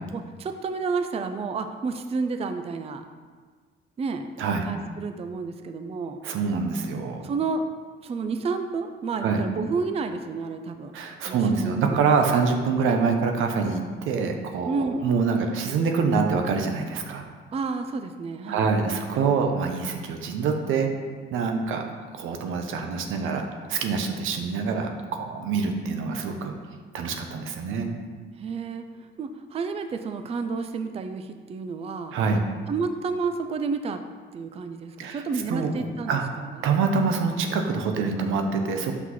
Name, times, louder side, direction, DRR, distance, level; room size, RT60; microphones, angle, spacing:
voice 1, 0.1-3.0 4.0-4.3 4.6-6.2 7.2-7.6 8.0-10.9 11.3-12.0 14.6-15.1 17.5-18.7 21.5-21.8 28.4-28.8 29.2-32.2 32.7-34.0 34.3-36.2, right 4 dB, 30° right, 8 dB, 0.4 m, -30 dB
voice 2, 6.2-7.3 9.2-9.4 10.9-17.3 18.5-20.9 21.3-26.5 26.9-27.9 32.1-32.4 35.0-35.2 35.5-36.2 36.6-38.9, right 5 dB, 85° right, 4 dB, 0.7 m, -25 dB
5.8 x 5.8 x 3.0 m, 1.5 s
cardioid pair, 90°, 20 cm